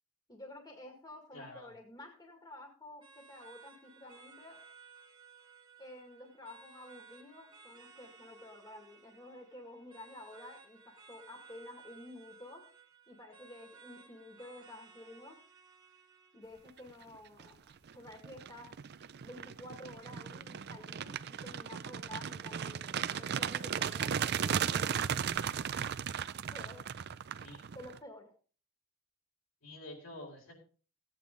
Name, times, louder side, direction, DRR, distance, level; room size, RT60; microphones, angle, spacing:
voice 1, 0.3-4.6 5.8-12.7 13.1-15.4 16.3-18.7 19.2-25.1 26.5-26.9 27.7-28.3, left 1 dB, 20° left, 2 dB, 2.0 m, -51 dB
voice 2, 1.3-1.7 27.4-27.6 29.6-30.6, left 1 dB, 70° left, 0 dB, 4.2 m, -48 dB
sound 1, 3.0-18.0, right 5 dB, 20° right, 1.7 m, -58 dB
sound 2, 17.1-17.5 17.9-28.0, right 8 dB, 50° right, 0.5 m, -36 dB
15.5 x 8.9 x 3.8 m, 0.39 s
head